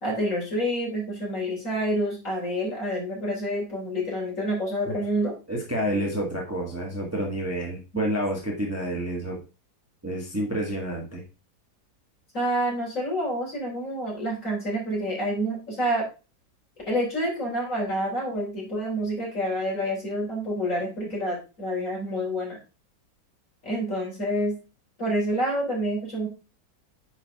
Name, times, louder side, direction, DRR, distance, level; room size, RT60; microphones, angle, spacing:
voice 1, 0.0-5.3 7.9-8.0 12.3-16.0 16.9-22.6 23.6-24.6 25.0-26.3, equal, 45° left, -3 dB, 4.0 m, -28 dB
voice 2, 5.5-9.4 10.0-11.2, right 1 dB, 10° right, -1 dB, 1.6 m, -29 dB
9.4 x 4.4 x 3.6 m, 0.31 s
omnidirectional pair, 1.9 m